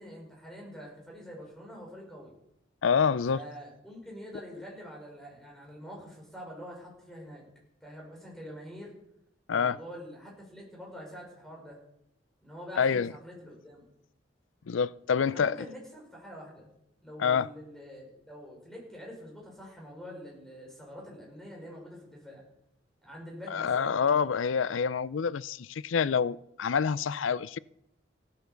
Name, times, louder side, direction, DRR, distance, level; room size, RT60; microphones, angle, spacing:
voice 1, 0.0-2.3 3.3-7.5 7.8-8.9 9.5-11.8 12.4-13.8 15.3-16.7 17.0-22.4 23.0-23.9, equal, ahead, 5.8 m, -45 dB
voice 2, 2.8-3.4 9.5-9.8 12.8-13.1 14.7-15.6 17.2-17.5 23.5-27.6, left 6 dB, 90° left, 0.5 m, -27 dB
15.5 x 10.0 x 7.0 m
head